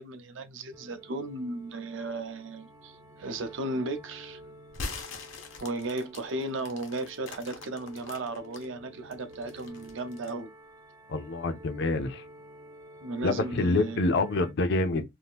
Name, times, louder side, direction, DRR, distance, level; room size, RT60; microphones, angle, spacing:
voice 1, 0.0-4.4 5.6-10.5 13.0-14.3, right 2 dB, 70° right, 0.5 m, -35 dB
sound 1, 0.7-14.5, right 1 dB, 20° right, 0.4 m, -51 dB
sound 2, 4.7-8.7 9.1-10.4, left 3 dB, 90° left, 0.8 m, -42 dB
voice 2, 11.1-12.2 13.2-15.0, left 2 dB, 65° left, 0.5 m, -27 dB
2.7 x 2.4 x 3.4 m
head